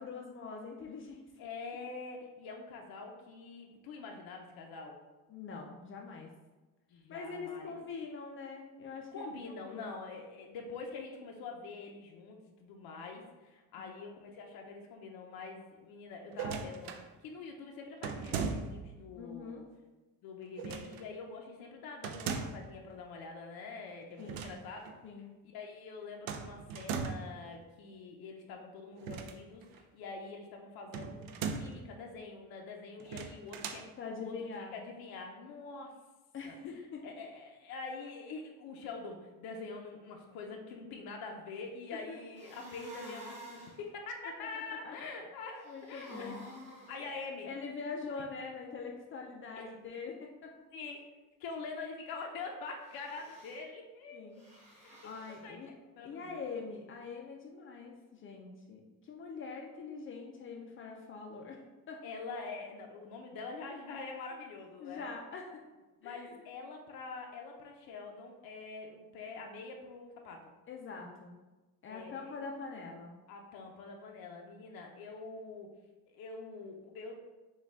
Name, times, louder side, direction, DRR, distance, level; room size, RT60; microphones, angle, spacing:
voice 1, 0.0-1.2 5.3-6.3 7.1-9.3 9.6-9.9 13.7-13.9 19.1-19.7 24.2-24.5 25.0-25.3 34.0-34.7 36.3-37.1 41.9-42.2 44.4-44.9 45.7-46.4 47.0-50.5 54.1-54.5 54.8-55.8 56.0-62.0 64.8-65.5 66.0-66.4 70.7-71.4 71.8-73.2, left 4 dB, 35° left, 0 dB, 0.4 m, -44 dB
voice 2, 1.4-5.0 6.9-7.8 9.1-19.6 20.2-24.9 25.5-33.8 34.2-34.3 34.7-35.9 36.4-36.6 37.0-46.3 46.9-47.5 49.6-49.7 50.7-51.0 51.4-54.3 54.7-56.4 62.0-65.1 66.0-70.5 71.9-72.3 73.3-75.7 76.1-77.2, left 4 dB, 70° left, 1 dB, 0.7 m, -45 dB
sound 1, 16.3-17.1 18.0-18.9 20.6-21.0 22.0-22.7 24.2-24.6 24.9-25.0 26.3-27.4 29.0-29.8 30.9-31.8 33.0-33.9, right 5 dB, 70° right, 0.5 m, -38 dB
sound 2, 42.4-43.8 45.6-47.0 52.8-53.6 54.4-55.4, equal, 20° right, 0.9 m, -50 dB
6.3 x 2.3 x 3.5 m, 1.2 s
cardioid pair, 170°, 37 cm